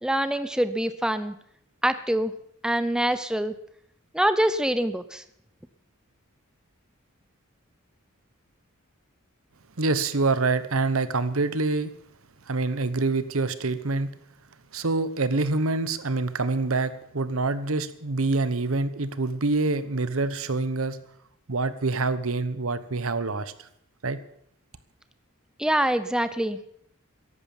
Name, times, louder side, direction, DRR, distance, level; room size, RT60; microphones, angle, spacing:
voice 1, 0.0-1.4 1.8-2.3 2.6-3.5 4.1-5.2 25.6-26.6, right 1 dB, 5° right, 12 dB, 0.5 m, -25 dB
voice 2, 9.8-11.9 12.5-14.1 14.7-21.0 21.5-23.7 24.0-24.2, right 3 dB, 75° right, 14 dB, 1.0 m, -26 dB
14.0 x 11.0 x 7.2 m, 0.71 s
head